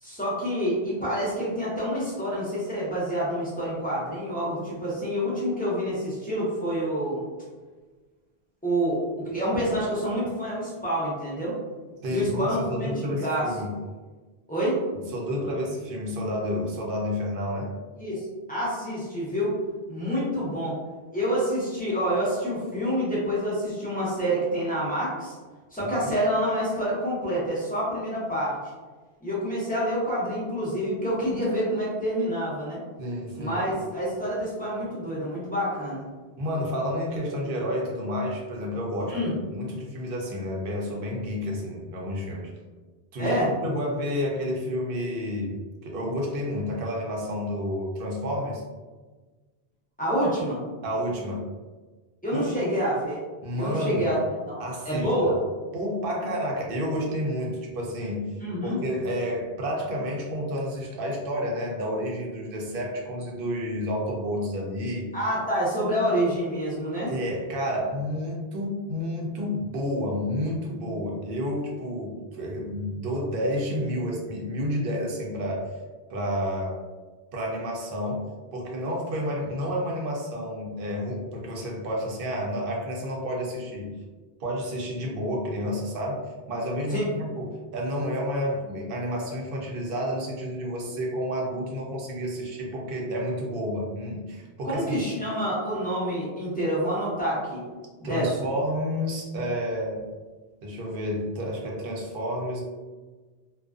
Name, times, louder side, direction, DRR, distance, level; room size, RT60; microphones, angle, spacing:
voice 1, 0.0-7.3 8.6-11.5 12.1-13.4 14.5-14.8 18.0-19.5 19.9-20.7 21.1-25.3 25.7-28.6 29.2-32.8 33.4-36.1 39.1-39.3 43.2-43.5 50.0-50.6 52.2-53.2 53.6-54.2 54.5-54.6 54.8-55.4 58.4-58.8 65.1-67.1 86.9-87.2 94.6-97.6 98.0-98.3, equal, 10° left, -8 dB, 0.6 m, -27 dB
voice 2, 12.0-13.7 15.1-17.7 25.8-26.1 33.0-33.6 36.4-42.5 43.1-48.6 50.8-51.4 52.3-52.7 53.4-54.0 54.6-55.1 55.7-65.1 67.1-75.8 76.1-76.8 77.3-78.2 78.5-84.0 84.4-86.2 86.5-95.0 98.0-100.0 100.6-102.6, equal, 65° right, -2 dB, 0.7 m, -30 dB
2.4 x 2.2 x 2.3 m, 1.3 s
omnidirectional pair, 1.1 m